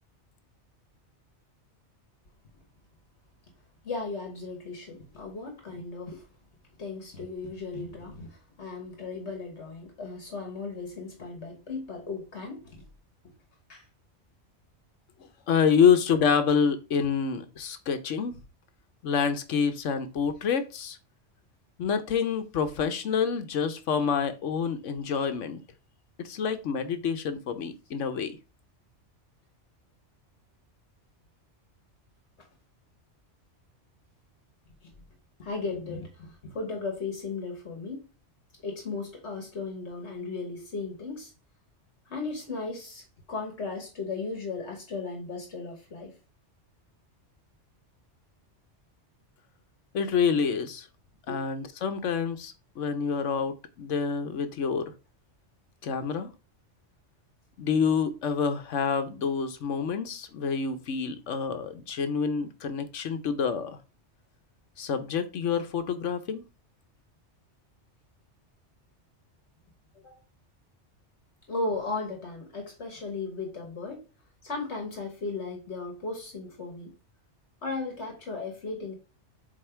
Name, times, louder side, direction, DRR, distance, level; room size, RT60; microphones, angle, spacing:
voice 1, 3.8-6.3 6.8-12.8 13.7-13.9 32.4-32.5 34.8-34.9 35.4-38.1 38.6-41.3 42.1-46.2 51.3-51.4 70.0-70.2 71.5-74.1 74.4-76.9 77.6-79.0, left 3 dB, 70° left, 1.6 m, -36 dB
voice 2, 15.5-18.4 19.0-21.0 21.8-25.6 26.2-28.4 49.9-50.9 51.3-54.9 55.8-56.3 57.6-63.8 64.8-66.4, left 6 dB, 85° left, 1.2 m, -27 dB
7.5 x 2.9 x 4.4 m
omnidirectional pair, 1.2 m